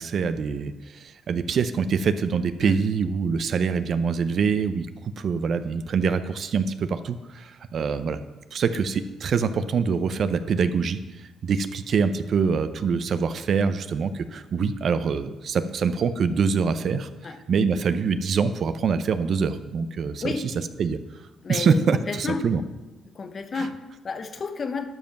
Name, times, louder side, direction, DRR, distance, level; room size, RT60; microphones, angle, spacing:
voice 1, 0.0-4.9 5.2-8.2 8.5-11.0 11.4-17.1 17.5-20.3 20.8-21.0 21.5-22.6 23.5-23.7, right 5 dB, 55° right, 11 dB, 0.6 m, -24 dB
voice 2, 21.4-22.5 23.1-24.9, left 4 dB, 40° left, 8 dB, 1.0 m, -31 dB
12.0 x 5.3 x 5.9 m, 1.1 s
cardioid pair, 90°, 0 cm